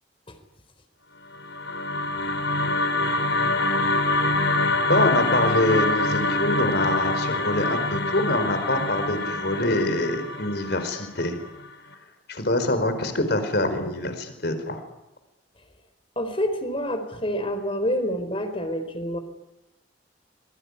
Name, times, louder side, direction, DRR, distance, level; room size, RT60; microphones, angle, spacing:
sound 1, 1.3-11.6, left 2 dB, 75° left, 3.5 m, -25 dB
voice 1, 4.9-11.4 12.3-14.8, left 1 dB, 55° left, 9 dB, 4.7 m, -25 dB
voice 2, 16.2-19.2, equal, 30° left, 8 dB, 4.0 m, -27 dB
26.5 x 22.5 x 9.8 m, 0.92 s
head